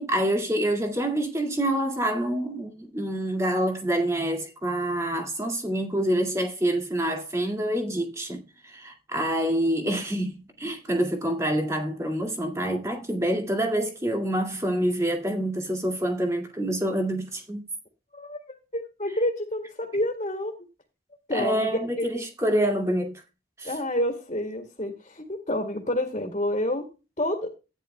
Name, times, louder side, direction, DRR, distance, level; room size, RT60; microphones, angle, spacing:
voice 1, 0.0-17.6 21.3-23.1 23.6-23.7, right 1 dB, 15° right, 2.1 m, -27 dB
voice 2, 18.7-20.5 21.3-22.2 23.6-26.9 27.2-27.5, left 1 dB, 40° left, 2.1 m, -28 dB
14.5 x 10.0 x 2.2 m
head